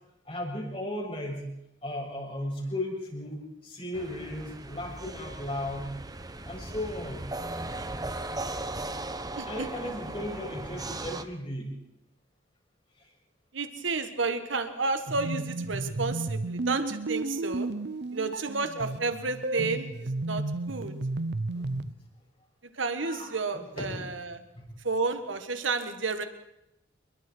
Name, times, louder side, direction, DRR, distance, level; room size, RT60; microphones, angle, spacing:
voice 1, 0.3-1.4 1.8-5.9 6.5-7.3 9.5-11.7 13.0-13.1 19.5-19.7 21.6-21.8 23.0-24.1 24.6-24.7, left 1 dB, 30° left, -1 dB, 7.1 m, -36 dB
sound 1, 3.9-11.2, right 2 dB, 20° right, 1.1 m, -37 dB
voice 2, 9.4-9.7 13.5-17.7 18.1-20.9 22.8-24.4 24.8-26.2, right 4 dB, 80° right, 8 dB, 1.8 m, -31 dB
sound 2, 15.1-21.9, right 2 dB, 55° right, 0.7 m, -33 dB
28.5 x 22.0 x 4.7 m, 0.83 s
head